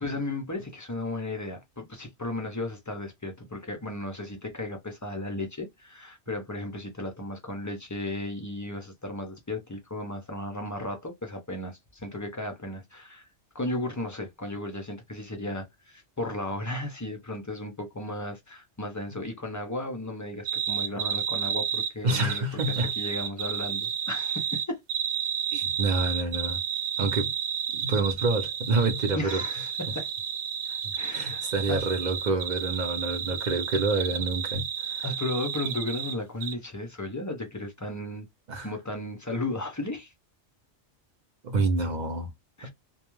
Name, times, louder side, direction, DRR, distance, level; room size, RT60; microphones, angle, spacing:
voice 1, 0.0-13.3 13.5-24.8 29.1-30.1 31.0-31.4 31.7-31.8 35.0-38.3 38.6-40.1 42.6-42.7, left 1 dB, 30° left, 0.3 m, -35 dB
sound 1, 20.5-36.2 36.4-36.5, right 8 dB, 75° right, 0.9 m, -31 dB
voice 2, 22.0-22.9 25.5-26.6 27.0-27.3 27.7-29.4 30.7-35.0 38.5-38.7 41.4-42.3 42.6-42.7, right 3 dB, 55° right, 0.5 m, -28 dB
2.3 x 2.2 x 3.0 m
omnidirectional pair, 1.2 m